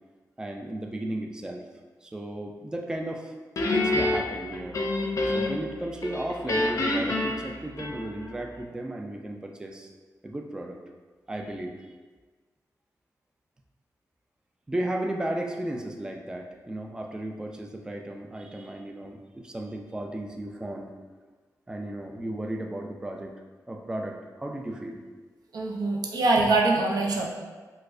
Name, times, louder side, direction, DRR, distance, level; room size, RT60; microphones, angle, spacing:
voice 1, 0.4-1.6 2.0-3.3 3.7-4.8 5.3-9.9 10.2-10.8 11.3-11.7 14.7-20.9 21.7-23.3 23.7-25.0, right 1 dB, 10° right, 2 dB, 0.3 m, -34 dB
Guitar, 3.6-5.7 6.0-8.3, left 2 dB, 55° left, 0.5 m, -27 dB
voice 2, 25.5-27.3, right 2 dB, 80° right, -1 dB, 0.5 m, -23 dB
4.5 x 2.1 x 2.5 m, 1.4 s
wide cardioid pair, 90°, 7 cm